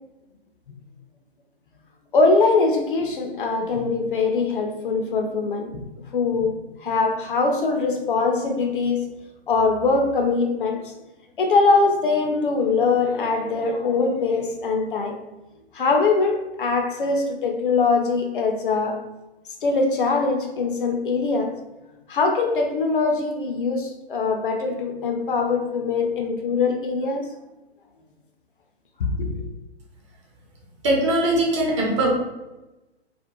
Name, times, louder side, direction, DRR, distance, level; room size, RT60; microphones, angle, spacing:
voice 1, 2.1-5.7 6.1-9.1 9.5-10.9 11.4-15.2 15.7-19.0 19.6-21.6 22.1-27.3 29.0-29.4, left 4 dB, 55° left, 0.5 m, -22 dB
voice 2, 30.8-32.1, right 1 dB, 30° right, 0.5 m, -20 dB
2.4 x 2.1 x 2.8 m
figure-of-eight pair, 125°, 33 cm